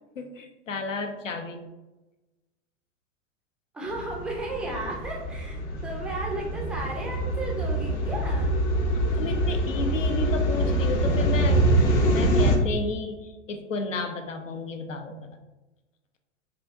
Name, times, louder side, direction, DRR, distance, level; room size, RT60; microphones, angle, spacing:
voice 1, 0.2-1.7 8.9-11.7 12.1-15.2, left 4 dB, 85° left, 6 dB, 0.6 m, -32 dB
voice 2, 3.7-8.5, right 2 dB, 5° right, -1 dB, 0.3 m, -34 dB
sound 1, 3.9-12.6, right 1 dB, 60° left, 0.9 m, -25 dB
4.8 x 2.7 x 2.4 m, 1.1 s
figure-of-eight pair, 95°, 37 cm